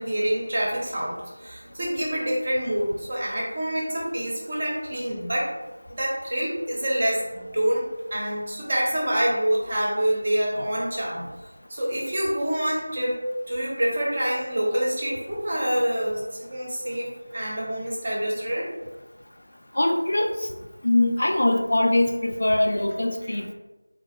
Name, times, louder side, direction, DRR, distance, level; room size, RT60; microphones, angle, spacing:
voice 1, 0.0-5.5 5.9-11.2 11.7-13.2 13.5-16.2 16.5-18.7 23.2-23.4, right 1 dB, 25° right, -4 dB, 0.7 m, -26 dB
voice 2, 19.8-20.3 20.8-23.5, left 1 dB, 50° left, 4 dB, 0.3 m, -22 dB
3.8 x 3.6 x 2.4 m, 1.1 s
figure-of-eight pair, 180°, 0 cm